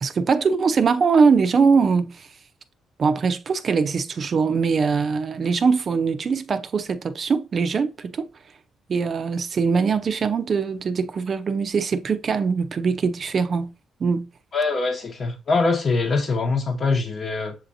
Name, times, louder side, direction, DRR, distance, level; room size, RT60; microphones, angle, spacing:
voice 1, 0.0-2.3 3.0-8.3 8.9-13.7 14.0-14.3, right 5 dB, 45° right, 0.5 m, -22 dB
voice 2, 14.5-17.5, left 3 dB, 45° left, 0.9 m, -23 dB
7.3 x 2.7 x 2.6 m
cardioid pair, 90°, 0 cm